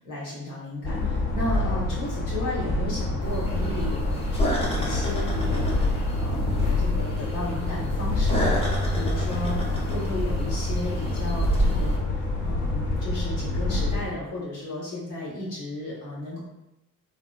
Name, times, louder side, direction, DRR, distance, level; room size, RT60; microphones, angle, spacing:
voice 1, 0.0-5.8 6.1-16.4, left 1 dB, 80° left, -6 dB, 1.2 m, -34 dB
sound 1, 0.8-14.0, left 2 dB, 50° left, 0.7 m, -27 dB
sound 2, 3.2-12.0, equal, 15° left, 0.7 m, -29 dB
2.7 x 2.0 x 2.3 m, 0.92 s
hypercardioid pair, 60°, 41 cm